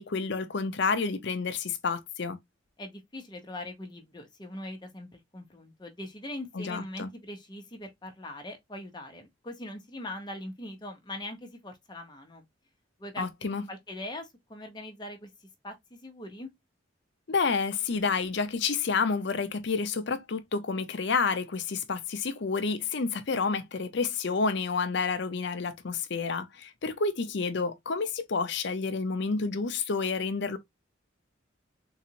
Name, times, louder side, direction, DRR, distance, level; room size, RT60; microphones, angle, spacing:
voice 1, 0.0-2.4 6.5-7.1 13.2-13.6 17.3-30.6, left 4 dB, 60° left, 0.6 m, -29 dB
voice 2, 2.8-12.4 13.0-13.3 13.7-16.5, left 1 dB, 20° left, 1.0 m, -41 dB
3.9 x 2.5 x 2.8 m
head